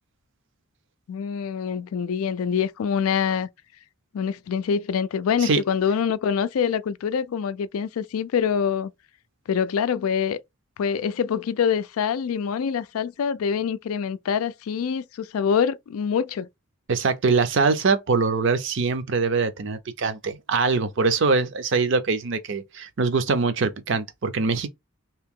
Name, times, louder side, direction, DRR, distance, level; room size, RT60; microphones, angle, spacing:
voice 1, 1.1-3.5 4.1-8.9 9.5-10.4 10.8-16.5, left 7 dB, 80° left, 0.4 m, -25 dB
voice 2, 16.9-24.7, right 4 dB, 60° right, 0.6 m, -23 dB
2.9 x 2.8 x 3.5 m
head